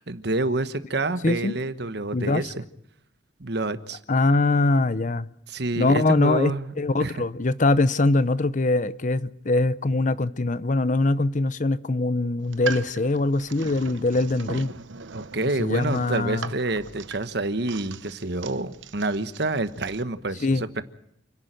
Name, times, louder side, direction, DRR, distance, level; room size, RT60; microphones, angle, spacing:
voice 1, 0.1-2.5 3.4-4.0 5.5-6.7 7.0-7.2 15.1-20.8, right 2 dB, 60° right, 1.3 m, -28 dB
voice 2, 1.2-1.5 2.1-2.4 4.1-5.3 5.8-14.7 15.6-16.5 20.4-20.6, left 2 dB, 40° left, 0.7 m, -23 dB
sound 1, 12.4-20.0, right 5 dB, 80° right, 0.9 m, -39 dB
29.0 x 11.0 x 9.1 m
head